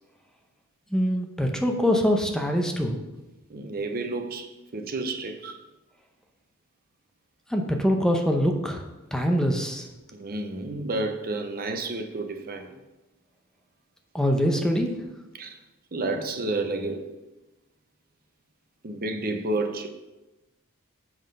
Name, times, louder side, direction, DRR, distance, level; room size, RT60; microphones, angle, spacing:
voice 1, 0.9-3.0 7.5-8.8 9.1-9.9 14.1-14.9, equal, 5° left, 3 dB, 0.7 m, -24 dB
voice 2, 3.5-5.6 10.1-12.8 15.3-15.6 15.9-17.1 18.8-19.9, right 2 dB, 45° right, 6 dB, 0.7 m, -31 dB
7.6 x 5.9 x 5.3 m, 1.1 s
head